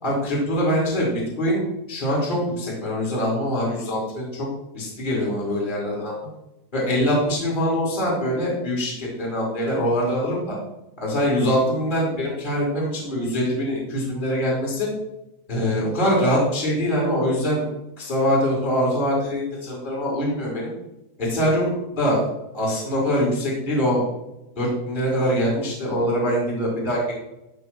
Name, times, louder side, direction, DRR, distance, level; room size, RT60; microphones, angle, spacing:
voice 1, 0.0-4.5 4.7-6.1 6.7-10.6 11.0-14.9 15.5-17.6 18.0-20.7 21.2-24.0 24.6-27.1, equal, 10° left, -4 dB, 2.9 m, -23 dB
14.5 x 5.0 x 6.1 m, 0.92 s
omnidirectional pair, 5.3 m